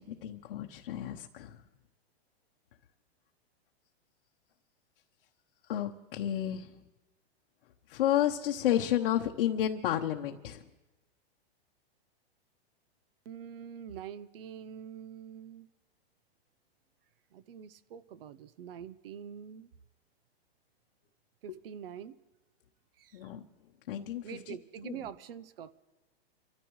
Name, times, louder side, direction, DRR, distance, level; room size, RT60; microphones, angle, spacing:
voice 1, 0.0-1.6 5.7-6.7 7.9-10.6 23.1-23.5 23.9-24.5 24.8-24.9, left 11 dB, 55° left, 2 dB, 0.9 m, -31 dB
voice 2, 13.2-15.7 17.3-19.7 21.4-22.2 23.0-23.3 24.2-25.7, right 8 dB, 60° right, 17 dB, 0.8 m, -45 dB
29.5 x 13.5 x 3.1 m, 1.1 s
hypercardioid pair, 160°, 32 cm